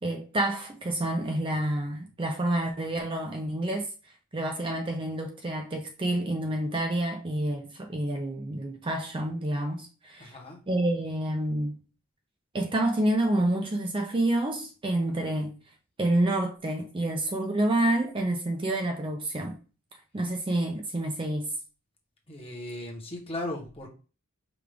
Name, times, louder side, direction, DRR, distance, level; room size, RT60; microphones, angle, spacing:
voice 1, 0.0-3.9 4.3-10.4 10.7-11.8 12.5-15.6 16.0-19.6 20.1-21.5, right 1 dB, 25° right, 0.4 m, -28 dB
voice 2, 10.2-10.6 22.3-23.9, left 1 dB, 25° left, 0.9 m, -37 dB
5.0 x 2.4 x 3.3 m
head